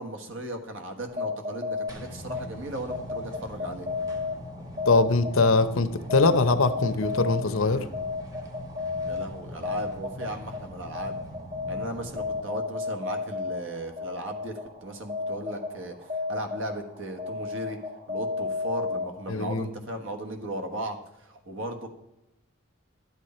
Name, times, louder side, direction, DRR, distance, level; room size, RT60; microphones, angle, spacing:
voice 1, 0.0-3.9 9.0-11.2 11.7-15.9 16.3-17.8 18.1-21.9, right 1 dB, 65° right, 5 dB, 1.4 m, -36 dB
sound 1, 1.0-19.5, left 4 dB, 40° right, 1.6 m, -34 dB
sound 2, 1.9-12.5, left 1 dB, 15° right, 1.1 m, -43 dB
voice 2, 4.9-7.9 19.3-19.7, left 3 dB, 75° left, 11 dB, 0.8 m, -22 dB
12.0 x 8.1 x 4.4 m, 0.92 s
head